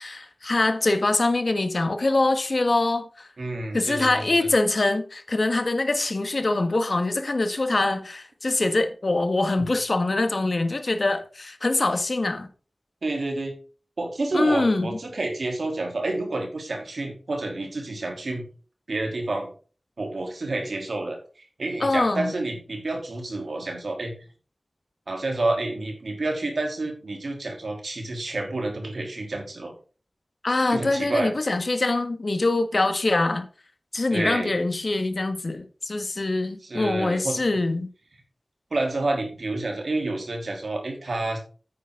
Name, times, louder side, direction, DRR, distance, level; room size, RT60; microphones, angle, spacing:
voice 1, 0.0-3.3 3.7-12.5 14.3-15.0 21.8-22.3 30.4-33.4 33.9-37.9, left 2 dB, 60° left, 1.5 m, -24 dB
voice 2, 3.4-4.5 13.0-13.5 14.0-18.4 18.9-19.5 20.0-21.2 21.6-24.1 25.1-29.7 30.7-31.3 34.1-34.5 36.6-37.4 38.7-41.4, right 2 dB, 90° right, 3.3 m, -29 dB
9.3 x 9.1 x 3.8 m
wide cardioid pair, 70°, 0 cm